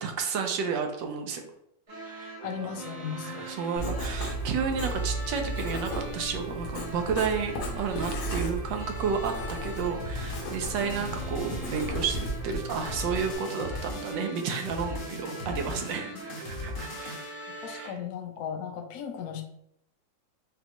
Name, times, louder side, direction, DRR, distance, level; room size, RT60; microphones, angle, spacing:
voice 1, 0.0-1.4 2.0-2.3 2.6-2.7 3.1-18.0, right 6 dB, 80° right, 4 dB, 1.3 m, -32 dB
sound 1, 1.9-17.9, right 1 dB, 55° right, 0.4 m, -42 dB
voice 2, 2.4-3.5 10.8-11.2 15.7-15.9 16.1-16.2 17.6-19.4, left 7 dB, 70° left, 4 dB, 1.0 m, -37 dB
Writing, 3.8-13.3, right 1 dB, 85° left, 1.5 m, -35 dB
sound 2, 10.0-17.3, left 2 dB, 45° left, 0.8 m, -38 dB
5.2 x 2.4 x 2.9 m, 0.73 s
omnidirectional pair, 2.0 m